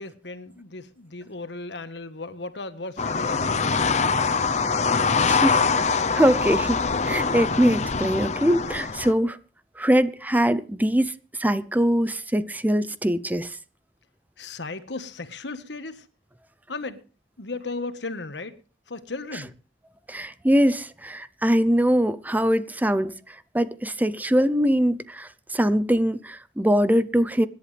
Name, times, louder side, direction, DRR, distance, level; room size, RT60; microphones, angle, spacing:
voice 1, 0.0-4.4 14.4-16.1 16.7-17.0 17.4-18.6 18.9-19.5, left 3 dB, 85° left, 1.5 m, -36 dB
sound 1, 3.0-9.1, left 4 dB, 40° left, 0.8 m, -24 dB
voice 2, 5.2-5.6 6.1-9.4 9.8-11.1 11.4-13.6 20.1-27.5, equal, 10° right, 0.7 m, -22 dB
25.0 x 11.0 x 3.4 m
head